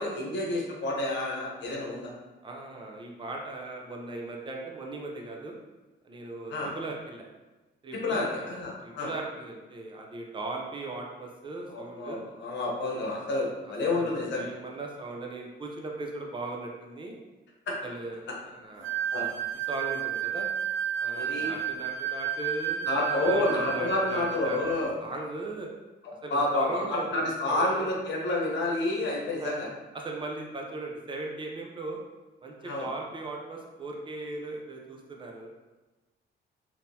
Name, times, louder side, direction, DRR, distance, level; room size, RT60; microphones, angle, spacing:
voice 1, 0.0-2.1 6.5-6.7 8.0-9.1 11.7-14.5 17.7-17.8 19.1-19.3 21.1-21.5 22.8-24.9 26.3-29.7 32.6-32.9, left 2 dB, 65° left, -3 dB, 1.0 m, -29 dB
voice 2, 2.4-5.5 6.0-7.3 7.8-8.5 8.8-12.2 13.9-17.2 17.8-19.0 19.7-20.5 21.0-25.7 26.2-27.9 29.4-29.6 29.9-32.0 32.4-35.5, right 2 dB, 25° right, 0 dB, 0.6 m, -38 dB
sound 1, 18.8-24.9, right 9 dB, 75° right, 0.5 m, -32 dB
3.6 x 2.8 x 2.8 m, 1.1 s
cardioid pair, 90°, 20 cm